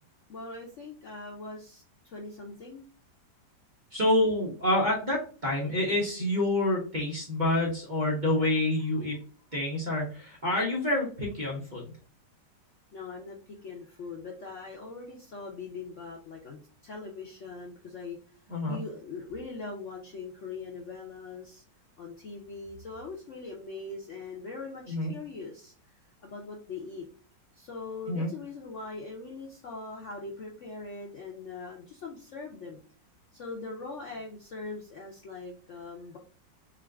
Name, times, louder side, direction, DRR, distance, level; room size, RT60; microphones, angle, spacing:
voice 1, 0.3-2.9 12.9-21.6 22.0-25.7 26.2-27.1 27.5-32.8 33.3-36.2, left 3 dB, 60° left, -1 dB, 0.8 m, -41 dB
voice 2, 3.9-9.2 9.5-11.8 18.5-18.8 24.9-25.1 28.1-28.3, left 1 dB, 35° right, -4 dB, 0.8 m, -27 dB
3.9 x 2.5 x 3.3 m, 0.40 s
omnidirectional pair, 2.0 m